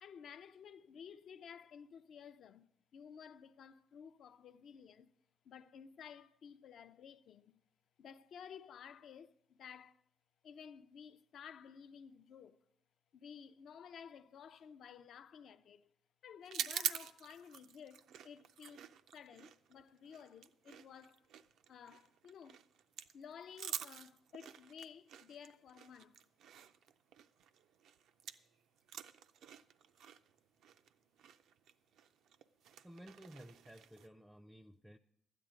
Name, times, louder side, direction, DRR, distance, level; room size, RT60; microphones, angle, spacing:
voice 1, 0.0-5.1 5.4-7.6 8.0-10.0 10.4-12.6 13.1-15.9 16.2-21.3 21.7-22.6 23.1-26.2, left 7 dB, 65° left, 0.4 m, -54 dB
sound 1, 16.5-28.5 28.8-34.1, right 9 dB, 80° right, 0.4 m, -47 dB
voice 2, 32.8-35.0, equal, 5° right, 0.4 m, -55 dB
12.5 x 9.2 x 5.1 m
cardioid pair, 90°, 0 cm